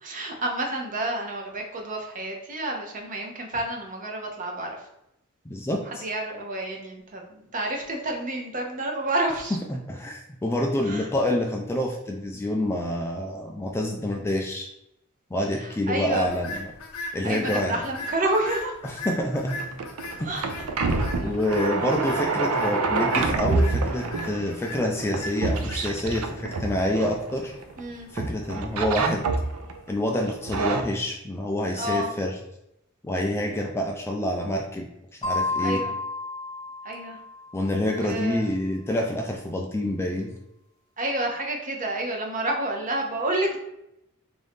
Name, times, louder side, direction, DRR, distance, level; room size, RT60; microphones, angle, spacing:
voice 1, 0.0-4.9 5.9-9.6 10.8-11.1 15.6-16.3 17.2-18.8 20.2-20.5 27.8-28.1 31.7-32.1 35.6-35.9 36.8-37.2 37.8-38.4 41.0-43.6, right 1 dB, 35° right, 2 dB, 0.7 m, -29 dB
voice 2, 5.5-6.0 9.7-14.7 15.3-16.7 17.1-17.8 18.8-19.6 21.2-27.5 28.1-29.2 29.9-32.3 33.0-34.9 35.2-35.8 37.5-40.3, left 1 dB, 10° left, 1 dB, 0.3 m, -27 dB
sound 1, 16.2-30.5, left 2 dB, 70° left, 0.6 m, -40 dB
sound 2, 19.4-27.8 28.2-29.8 30.3-30.8, right 3 dB, 75° right, 0.5 m, -27 dB
sound 3, 35.2-37.7, left 3 dB, 30° left, 0.8 m, -31 dB
3.6 x 2.6 x 3.5 m, 0.82 s
head